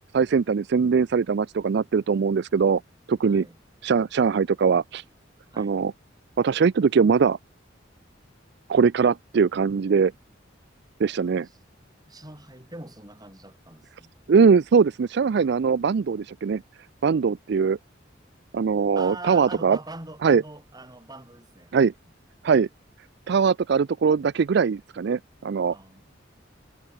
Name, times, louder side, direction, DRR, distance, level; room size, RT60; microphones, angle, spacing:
voice 1, 0.1-2.8 3.1-3.4 3.8-5.0 5.6-5.9 6.4-7.4 8.7-10.1 11.0-11.5 14.3-16.6 17.0-17.8 18.5-19.8 20.2-20.4 21.7-21.9 22.4-22.7 23.3-25.7, right 5 dB, 60° right, 0.4 m, -21 dB
voice 2, 3.2-3.6 5.5-5.8 12.1-14.1 18.9-21.9 25.7-26.0, right 2 dB, 20° right, 6.3 m, -42 dB
head